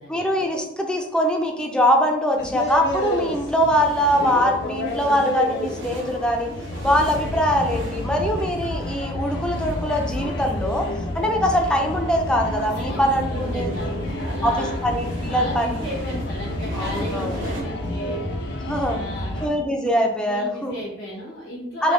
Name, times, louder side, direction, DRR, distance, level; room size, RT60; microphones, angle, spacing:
voice 1, 0.1-6.5 6.8-13.9 14.4-15.8 16.7-17.3 18.7-19.0 19.4-20.8 21.8-21.9, equal, 5° left, 2 dB, 0.4 m, -22 dB
sound 1, 2.4-19.5, left 1 dB, 60° left, 0.6 m, -29 dB
sound 2, 2.9-17.6, right 1 dB, 85° right, 1.1 m, -38 dB
voice 2, 12.7-14.8 15.3-18.2 18.8-19.4 20.3-21.9, equal, 85° left, -6 dB, 1.0 m, -35 dB
3.4 x 2.6 x 3.9 m, 0.80 s
head